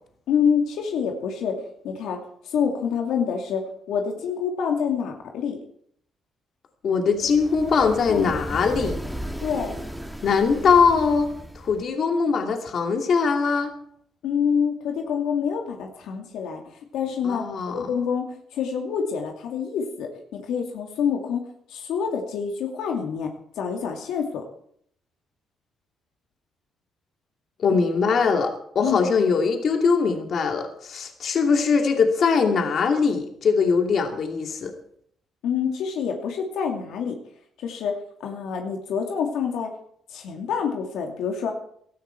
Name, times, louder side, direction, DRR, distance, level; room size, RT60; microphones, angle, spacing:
voice 1, 0.3-5.6 8.1-8.6 9.4-9.8 14.2-16.6 16.9-17.4 17.7-21.4 21.7-24.4 27.7-27.8 28.8-29.1 35.4-37.2 37.6-39.7 40.1-41.5, left 7 dB, 85° left, 2 dB, 2.5 m, -27 dB
voice 2, 6.8-8.9 10.2-11.3 11.5-13.7 17.2-17.9 27.6-34.7, left 5 dB, 60° left, 4 dB, 2.6 m, -21 dB
sound 1, 7.2-11.9, equal, ahead, 2.0 m, -35 dB
17.0 x 13.0 x 4.6 m, 0.64 s
cardioid pair, 90°, 0 cm